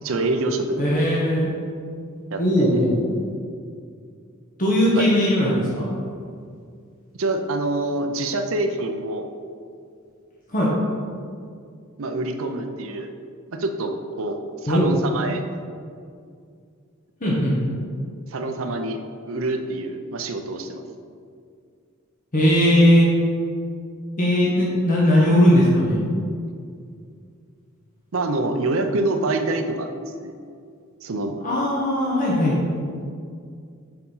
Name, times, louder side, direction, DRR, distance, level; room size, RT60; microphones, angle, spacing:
voice 1, 0.0-0.9 2.3-2.9 5.0-5.1 7.2-9.3 12.0-13.1 13.5-15.4 18.3-19.0 19.3-20.8 28.1-29.9 30.2-30.3 31.0-31.4, right 2 dB, 65° right, 6 dB, 0.6 m, -26 dB
voice 2, 0.8-1.5 2.4-2.9 4.6-5.8 10.5-10.7 14.6-14.9 17.2-17.5 22.3-23.1 24.2-26.0 31.4-32.6, equal, 40° left, -6 dB, 1.4 m, -18 dB
7.0 x 5.4 x 5.6 m, 2.3 s
head